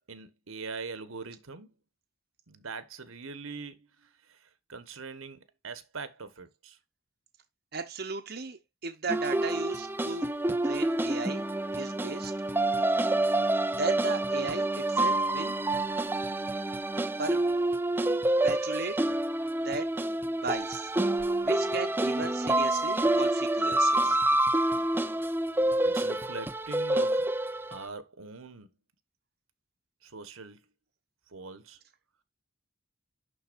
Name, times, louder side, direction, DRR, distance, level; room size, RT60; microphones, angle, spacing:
voice 1, 0.1-1.7 2.5-6.8 25.8-27.3 27.7-28.7 30.0-30.6 31.3-31.8, right 4 dB, 85° right, 1.2 m, -42 dB
voice 2, 7.7-10.3 10.6-11.5 11.7-12.3 13.7-15.6 17.2-17.4 18.4-19.0 19.6-19.9 20.4-20.9 21.4-24.2, right 4 dB, 50° right, 0.8 m, -36 dB
sound 1, 9.1-27.8, right 1 dB, 10° right, 0.3 m, -28 dB
11.5 x 4.0 x 2.5 m
head